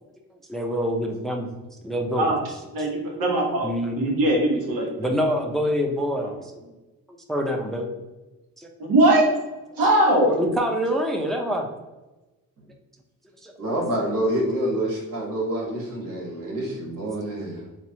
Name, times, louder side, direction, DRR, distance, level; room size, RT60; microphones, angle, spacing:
voice 1, 0.5-1.5 1.8-2.3 3.6-4.2 5.0-6.7 7.3-7.9 8.6-8.7 10.2-11.7 13.4-13.5, equal, ahead, 2 dB, 0.5 m, -26 dB
voice 2, 2.7-3.7 3.9-5.1 6.2-6.3 8.8-9.3 9.8-10.4, right 1 dB, 90° right, 0 dB, 0.9 m, -20 dB
voice 3, 13.6-17.6, right 1 dB, 70° right, -3 dB, 1.2 m, -27 dB
3.1 x 2.3 x 2.7 m, 1.1 s
cardioid pair, 70°, 34 cm